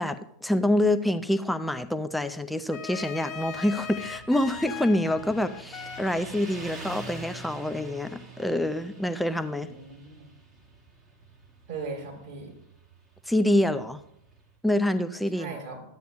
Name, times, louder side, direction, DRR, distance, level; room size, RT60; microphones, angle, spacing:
voice 1, 0.0-9.7 13.3-14.0 14.6-15.5, left 1 dB, 5° left, 10 dB, 0.5 m, -26 dB
sound 1, 2.7-6.1, left 7 dB, 25° left, 0.8 m, -39 dB
Motorcycle, 3.4-14.5, right 2 dB, 20° right, 1.8 m, -46 dB
voice 2, 9.6-10.3 11.7-12.6 15.3-15.8, right 4 dB, 50° right, -1 dB, 3.9 m, -38 dB
14.0 x 9.1 x 2.2 m, 0.75 s
figure-of-eight pair, 90°, 0 cm